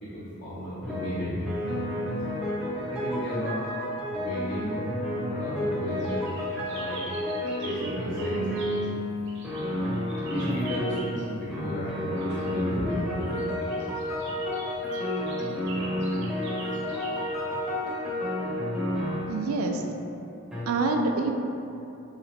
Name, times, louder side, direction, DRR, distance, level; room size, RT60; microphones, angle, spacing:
voice 1, 0.0-1.5 2.8-3.6 4.1-4.8 5.1-6.2 6.7-7.2 7.6-8.5 10.3-13.9, equal, 50° left, -13 dB, 0.6 m, -34 dB
sound 1, 0.8-1.2 1.4-9.0 9.4-11.1 11.5-19.4 20.5-20.6, left 1 dB, 5° right, 0.3 m, -31 dB
sound 2, 6.0-8.9 9.3-11.2 12.2-17.9, right 3 dB, 55° right, 0.7 m, -44 dB
voice 2, 19.3-19.8 20.7-21.3, right 3 dB, 90° right, 3 dB, 0.3 m, -26 dB
3.2 x 2.9 x 2.6 m, 2.7 s
head